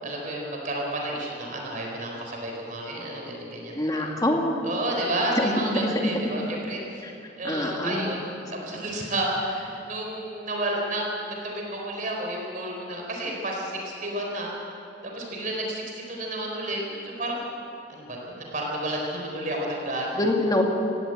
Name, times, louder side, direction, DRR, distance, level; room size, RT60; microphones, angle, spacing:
voice 1, 0.0-4.1 4.6-7.0 7.4-8.3 8.6-14.5 15.0-17.5 17.9-20.2, right 1 dB, 50° right, -1 dB, 4.2 m, -31 dB
voice 2, 3.7-4.7 5.4-6.3 7.0-7.1 7.4-8.1 20.2-20.6, left 1 dB, 20° left, 1 dB, 2.2 m, -25 dB
17.5 x 17.0 x 9.0 m, 2.8 s
head